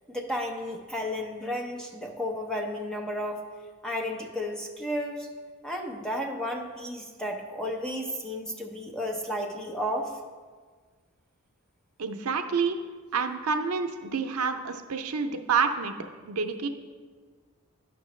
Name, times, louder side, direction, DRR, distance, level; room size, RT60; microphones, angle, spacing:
voice 1, 0.1-3.4 3.8-5.3 5.6-10.1, equal, 5° left, 0 dB, 0.6 m, -33 dB
voice 2, 12.0-12.8 13.1-15.9 16.3-16.7, right 5 dB, 85° right, 7 dB, 0.5 m, -28 dB
9.8 x 5.9 x 3.1 m, 1.5 s
head